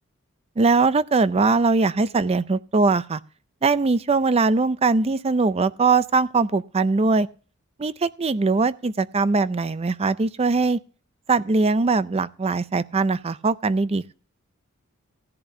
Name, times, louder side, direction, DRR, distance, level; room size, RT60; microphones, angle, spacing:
voice 1, 0.6-3.2 3.6-7.3 7.8-10.8 11.3-14.1, right 3 dB, 30° right, 0.5 m, -21 dB
16.0 x 10.5 x 2.7 m
head